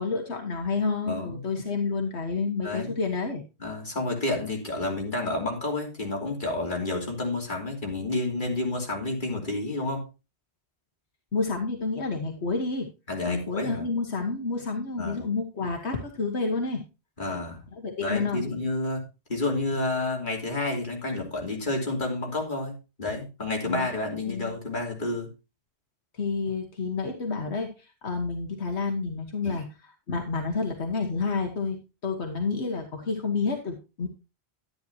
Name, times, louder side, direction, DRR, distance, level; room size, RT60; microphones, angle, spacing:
voice 1, 0.0-3.4 11.3-12.9 13.3-16.8 17.8-18.5 23.6-23.9 24.3-24.5 26.1-34.1, left 4 dB, 80° left, 3 dB, 1.7 m, -29 dB
voice 2, 1.1-1.4 2.6-2.9 3.6-10.1 13.1-13.9 15.0-15.2 17.2-17.6 18.0-19.0 19.3-25.3 29.4-29.6, left 2 dB, 50° left, 0 dB, 3.2 m, -30 dB
11.5 x 10.5 x 2.8 m, 0.28 s
omnidirectional pair, 1.1 m